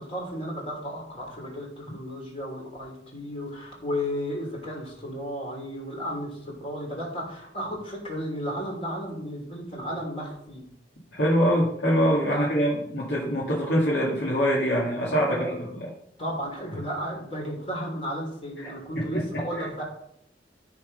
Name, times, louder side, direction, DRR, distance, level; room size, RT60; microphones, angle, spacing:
voice 1, 0.0-10.7 12.3-13.0 15.1-15.7 16.2-19.8, equal, 35° left, -1 dB, 3.5 m, -34 dB
voice 2, 11.1-15.4 15.8-15.9 18.6-18.7 18.9-19.2 19.6-19.7, equal, 85° left, -6 dB, 2.4 m, -24 dB
13.5 x 4.6 x 5.4 m, 0.73 s
head